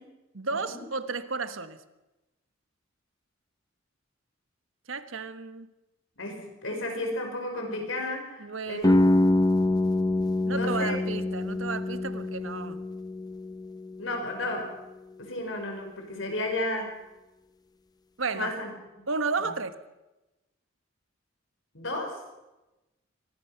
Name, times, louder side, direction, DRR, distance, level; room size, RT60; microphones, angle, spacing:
voice 1, 0.3-1.8 4.9-5.7 8.4-9.0 10.5-12.8 18.2-18.5 19.1-19.7, right 4 dB, 80° right, 11 dB, 1.3 m, -33 dB
voice 2, 6.2-8.9 10.5-11.0 14.0-14.7 15.2-16.9 18.3-18.7 19.4-19.5 21.7-22.2, left 1 dB, 75° left, 3 dB, 5.4 m, -33 dB
sound 1, 8.8-14.6, left 1 dB, 20° left, 0.8 m, -26 dB
24.0 x 18.5 x 5.9 m, 1.0 s
head